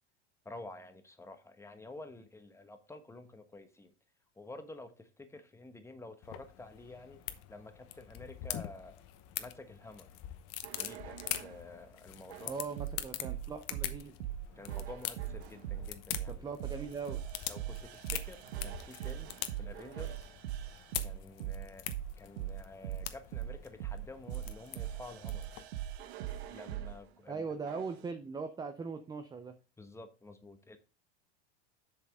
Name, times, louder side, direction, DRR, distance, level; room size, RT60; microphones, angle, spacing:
voice 1, 0.4-3.9 4.3-7.2 7.5-9.0 9.4-10.2 10.8-12.5 14.5-16.5 17.5-20.2 21.0-21.9 22.2-25.5 26.5-27.4 29.8-30.8, left 2 dB, 10° left, 1.2 m, -50 dB
sound 1, 6.2-25.6, left 13 dB, 50° left, 1.0 m, -44 dB
sound 2, 10.6-11.6 12.3-27.0 27.7-28.0, right 12 dB, 75° right, 1.1 m, -41 dB
voice 2, 12.5-14.1 16.3-17.2 27.3-29.6, right 5 dB, 10° right, 0.6 m, -40 dB
7.4 x 6.2 x 3.5 m
supercardioid pair, 115°, 33 cm